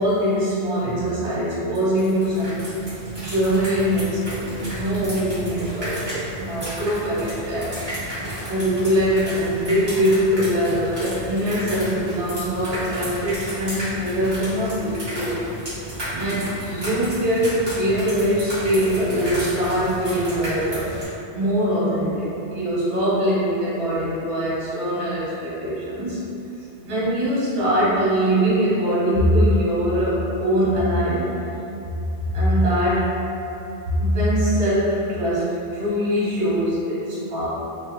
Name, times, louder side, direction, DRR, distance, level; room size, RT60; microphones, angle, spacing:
voice 1, 0.0-2.7 3.2-8.0 8.5-15.4 16.1-20.9 21.3-26.2 26.8-31.4 32.3-33.1 34.0-37.5, equal, 80° right, -8 dB, 1.2 m, -22 dB
sound 1, 1.7-21.1, equal, 25° right, 1.1 m, -33 dB
2.9 x 2.2 x 2.8 m, 2.9 s
omnidirectional pair, 1.1 m